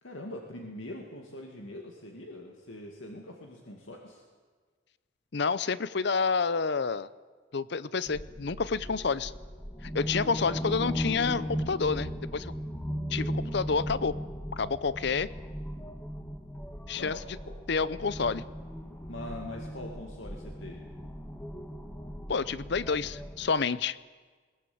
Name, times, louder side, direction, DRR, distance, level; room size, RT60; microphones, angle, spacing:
voice 1, 0.0-4.2 17.0-17.6 19.1-20.9, left 1 dB, 80° left, 1 dB, 2.3 m, -43 dB
voice 2, 5.3-7.1 7.5-9.3 9.8-12.5 13.1-14.1 14.5-15.3 16.9-17.2 17.7-18.4 22.3-24.0, left 5 dB, 60° left, 18 dB, 0.6 m, -29 dB
sound 1, 8.1-23.5, equal, 10° left, 1.4 m, -37 dB
21.5 x 19.5 x 8.7 m, 1.5 s
head